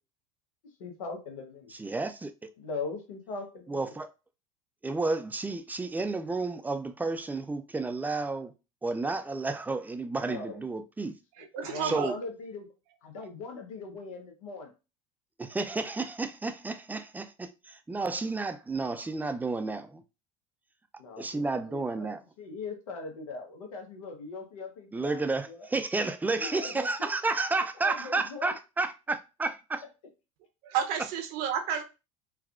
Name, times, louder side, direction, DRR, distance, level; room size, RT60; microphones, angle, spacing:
voice 1, 0.8-1.7 2.6-4.0 10.2-10.6 11.4-12.7 13.0-14.7 21.0-22.1 22.4-25.7 26.4-27.1 27.8-28.5, left 3 dB, 85° left, 0.9 m, -40 dB
voice 2, 1.7-2.3 3.7-4.1 4.8-8.5 8.8-11.1 11.8-12.2 15.4-20.0 21.2-22.2 24.9-29.8, right 3 dB, 10° right, 0.3 m, -31 dB
voice 3, 11.4-12.1 30.6-31.8, right 8 dB, 60° right, 0.7 m, -31 dB
3.4 x 2.3 x 2.4 m
hypercardioid pair, 90°, 17 cm